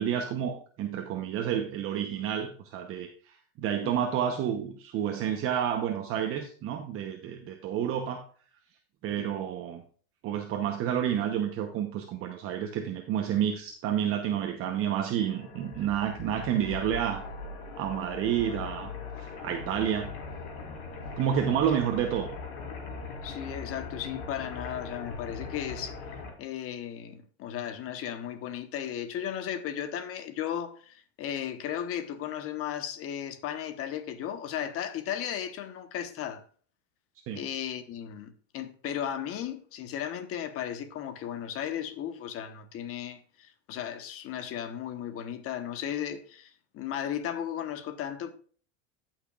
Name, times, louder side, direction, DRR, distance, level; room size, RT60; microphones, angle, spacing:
voice 1, 0.0-8.3 9.0-9.8 10.2-17.2 17.8-18.9 19.2-20.1 21.2-22.3 37.3-37.4, right 9 dB, 40° right, 0.9 m, -30 dB
voice 2, 3.8-4.1 9.2-9.3 21.7-21.8 23.2-26.0 26.4-36.4 37.3-48.3, left 10 dB, 40° left, 1.1 m, -35 dB
sound 1, 14.7-26.3, left 4 dB, 80° left, 3.0 m, -40 dB
15.0 x 5.9 x 2.4 m
supercardioid pair, 130°, 33 cm